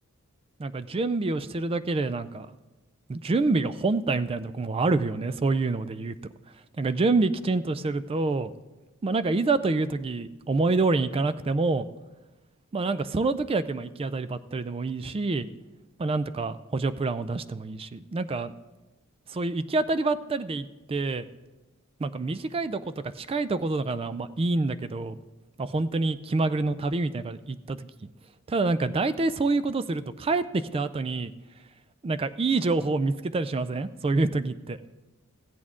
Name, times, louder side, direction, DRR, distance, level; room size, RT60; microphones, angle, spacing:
voice 1, 0.6-2.5 3.1-6.1 6.8-8.5 9.0-11.9 12.7-15.5 16.0-18.5 19.3-21.2 22.0-22.8 23.2-25.2 25.6-28.1 28.5-31.3 32.0-34.8, right 3 dB, 25° right, 14 dB, 0.3 m, -27 dB
15.0 x 8.4 x 3.7 m, 1.1 s
head